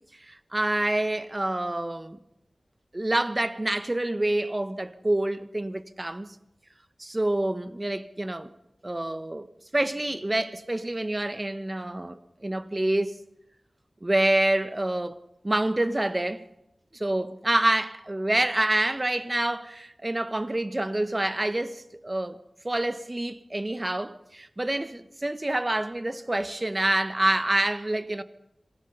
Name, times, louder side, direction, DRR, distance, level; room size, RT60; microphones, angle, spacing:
voice 1, 0.2-2.2 2.9-6.4 7.0-8.5 8.8-9.5 9.7-13.1 14.0-15.2 15.4-16.4 16.9-22.4 22.6-28.2, right 1 dB, 30° right, 1.2 m, -27 dB
26.5 x 17.5 x 5.6 m
cardioid pair, 45°, 0 cm